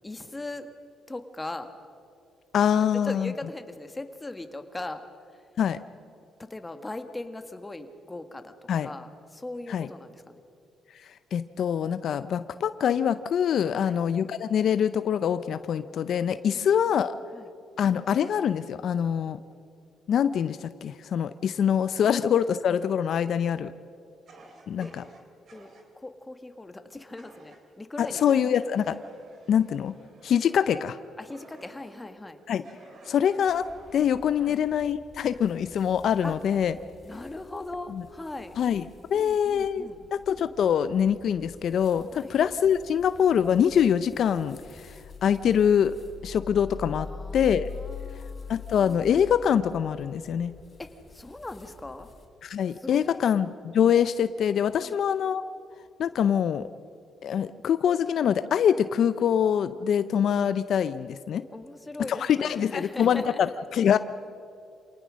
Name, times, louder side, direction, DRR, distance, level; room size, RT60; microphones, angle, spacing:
voice 1, 0.0-0.7 1.1-1.7 2.8-5.0 5.3-5.4 6.4-8.5 8.8-10.4 13.7-14.0 16.4-16.9 17.3-17.5 22.0-22.1 24.8-24.9 25.5-25.7 25.9-28.3 31.2-32.4 34.4-34.6 36.2-36.4 37.0-38.6 39.1-40.1 42.1-42.3 47.0-48.5 50.8-52.1 52.7-53.4 54.8-55.0 61.5-63.6, left 2 dB, 15° left, 8 dB, 1.7 m, -39 dB
voice 2, 2.5-3.3 5.6-5.8 8.7-8.9 9.7-9.9 11.0-17.1 17.8-19.4 20.1-23.7 24.7-25.0 28.0-29.0 29.5-29.9 30.2-31.0 32.5-32.6 33.1-36.8 37.9-38.0 38.6-38.8 39.1-45.9 46.2-47.1 47.3-47.7 48.5-50.5 52.4-55.4 56.0-56.7 57.2-61.4 62.1-64.0, left 8 dB, 65° left, 13 dB, 0.6 m, -24 dB
Fire, 24.3-25.9 27.2-27.6 27.9-32.1 32.6-34.5, right 2 dB, 55° right, 3.4 m, -51 dB
sound 1, 33.5-52.2, left 4 dB, 40° left, 3.9 m, -45 dB
27.0 x 18.5 x 6.4 m, 2.6 s
cardioid pair, 90°, 0 cm